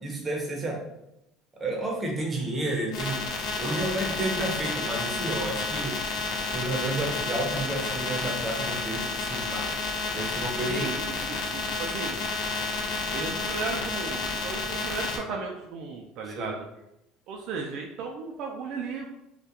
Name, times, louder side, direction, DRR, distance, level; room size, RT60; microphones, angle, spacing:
voice 1, 0.0-0.8 1.5-3.2 3.6-6.0 6.5-9.7 10.1-10.9 16.4-16.5, right 1 dB, 20° right, -1 dB, 0.7 m, -31 dB
sound 1, 2.9-15.2, left 3 dB, 65° left, 0.4 m, -31 dB
voice 2, 3.6-4.0 10.7-12.2 13.1-16.7 17.3-19.1, right 4 dB, 60° right, 1 dB, 0.3 m, -35 dB
2.3 x 2.1 x 2.8 m, 0.85 s
cardioid pair, 135°, 0 cm